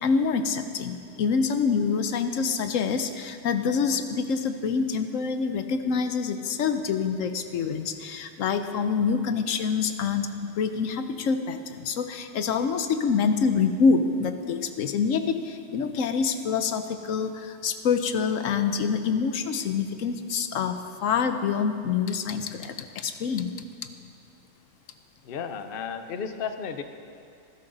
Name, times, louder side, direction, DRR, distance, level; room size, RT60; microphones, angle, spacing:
voice 1, 0.0-23.5, left 5 dB, 85° left, 8 dB, 1.1 m, -26 dB
voice 2, 25.2-26.8, left 6 dB, 50° left, 8 dB, 0.9 m, -33 dB
20.0 x 12.5 x 4.0 m, 2.4 s
omnidirectional pair, 1.3 m